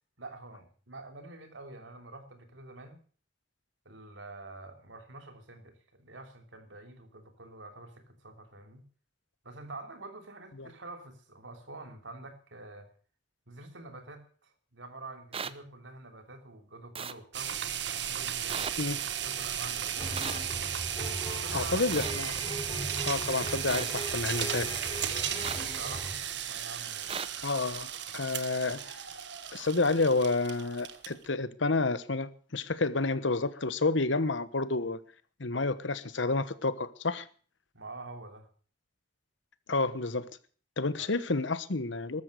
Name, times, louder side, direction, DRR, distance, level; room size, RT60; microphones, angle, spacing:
voice 1, 0.2-3.0 3.8-8.8 9.4-12.9 13.5-19.0 19.2-20.5 21.2-22.0 25.3-27.2 37.7-38.5 41.0-41.1, right 2 dB, 85° right, 3.2 m, -47 dB
sound 1, 15.3-15.5 17.0-17.1 18.5-18.7 20.2-20.4 21.9-22.1 23.7-23.8 25.4-25.6 27.1-27.3, right 6 dB, 30° right, 0.7 m, -35 dB
sound 2, 17.3-31.2, right 9 dB, 65° right, 1.5 m, -35 dB
sound 3, 20.0-26.3, equal, 25° left, 3.8 m, -39 dB
voice 2, 21.5-22.4 23.0-24.7 27.4-29.0 29.5-35.0 35.4-37.3 39.7-40.3 40.8-42.2, left 3 dB, 75° left, 1.2 m, -30 dB
14.0 x 13.0 x 6.6 m
head